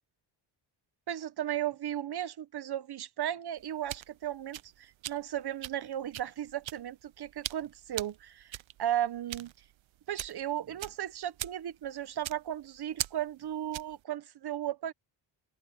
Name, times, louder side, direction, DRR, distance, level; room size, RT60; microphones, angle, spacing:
voice 1, 1.1-9.5 10.1-14.9, right 11 dB, 50° right, 1.1 m, -35 dB
sound 1, 3.6-14.0, right 14 dB, 65° right, 0.8 m, -42 dB
open air
wide cardioid pair, 135°, 50 cm